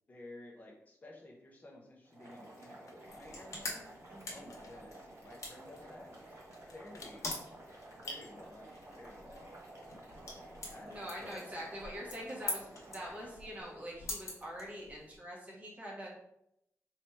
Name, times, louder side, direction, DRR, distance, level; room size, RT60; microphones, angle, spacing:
voice 1, 0.1-3.9 4.3-6.2 6.7-7.3 7.9-9.5 9.9-10.9 11.2-11.4, left 1 dB, 30° left, -2 dB, 0.6 m, -53 dB
Boiling, 2.0-13.6, right 1 dB, 55° right, 1.5 m, -53 dB
sound 1, 2.2-3.8 4.1-6.1 6.5-7.2 7.6-8.3 8.6-11.5 12.2-12.9, left 4 dB, 85° left, 0.6 m, -62 dB
sound 2, 3.1-15.2, left 2 dB, 65° left, 1.1 m, -46 dB
voice 2, 4.1-4.5 10.9-16.2, equal, 25° right, -4 dB, 1.0 m, -44 dB
3.2 x 2.8 x 4.4 m, 0.79 s
wide cardioid pair, 175°, 6 cm